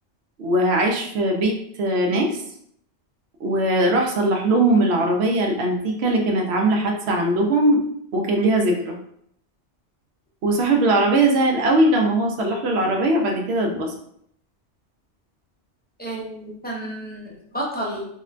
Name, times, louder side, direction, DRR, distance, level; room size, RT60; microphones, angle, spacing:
voice 1, 0.4-2.4 3.4-7.8 8.1-9.0 10.4-13.9, right 1 dB, 70° right, 2 dB, 0.8 m, -20 dB
voice 2, 16.0-18.1, right 1 dB, 10° left, -4 dB, 0.5 m, -31 dB
3.6 x 2.1 x 2.4 m, 0.69 s
omnidirectional pair, 1.2 m